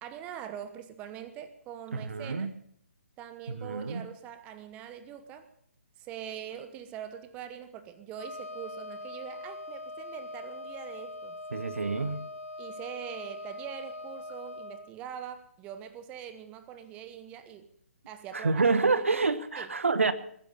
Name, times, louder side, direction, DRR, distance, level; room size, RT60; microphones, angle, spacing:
voice 1, 0.0-2.5 3.2-5.5 6.0-11.4 12.6-17.7 18.1-18.6 18.9-19.0 19.6-19.7, right 9 dB, 15° right, 11 dB, 1.0 m, -43 dB
voice 2, 1.9-2.5 3.5-4.1 11.5-12.3 18.3-20.1, right 4 dB, 65° right, 14 dB, 1.2 m, -27 dB
Wind instrument woodwind instrument, 8.1-14.9, left 2 dB, 75° left, 1.8 m, -42 dB
21.5 x 10.5 x 5.6 m, 0.66 s
figure-of-eight pair, 135°, 8 cm